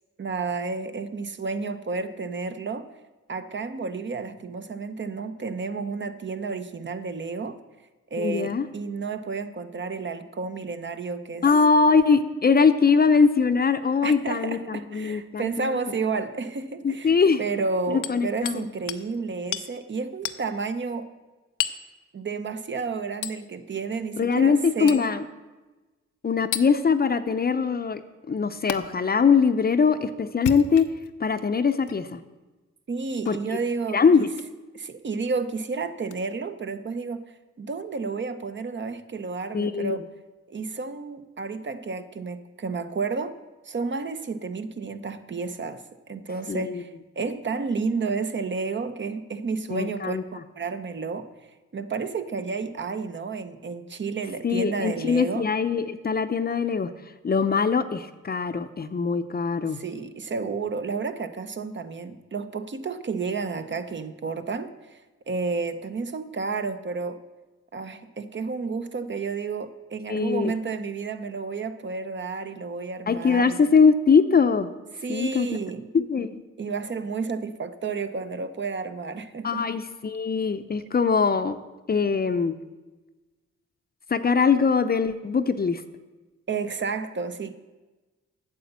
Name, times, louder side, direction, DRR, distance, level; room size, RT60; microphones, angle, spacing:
voice 1, 0.2-2.9 3.3-7.6 8.1-11.4 14.0-17.1 17.4-21.1 22.1-25.0 32.9-34.3 34.7-40.1 40.5-43.4 43.6-46.9 47.2-50.2 50.6-51.3 51.7-55.5 59.7-65.0 65.3-67.2 67.7-73.7 75.0-75.9 76.6-79.6 86.5-87.6, right 4 dB, 40° right, 10 dB, 0.8 m, -31 dB
voice 2, 8.2-8.7 11.4-15.8 16.8-17.4 17.9-18.6 24.2-25.2 26.2-28.0 28.3-30.9 31.2-32.2 33.3-33.6 33.9-34.3 39.5-40.0 46.5-46.8 49.7-50.2 54.4-56.9 57.2-59.8 70.1-70.5 73.1-74.7 75.1-75.5 75.9-76.4 79.4-81.6 81.9-82.5 84.1-85.8, left 5 dB, 30° left, 11 dB, 0.6 m, -22 dB
Hammer, 18.0-18.6 18.9-19.1 19.5-19.7 20.2-20.4 21.6-21.9 23.2-23.4 24.9-25.1 26.5-26.7 28.7-28.8 30.3-31.1 31.8-32.0 33.2-33.4 34.3-34.5 36.1-36.2, left 11 dB, 85° left, 0.6 m, -31 dB
9.4 x 6.9 x 8.1 m, 1.2 s
cardioid pair, 85°, 29 cm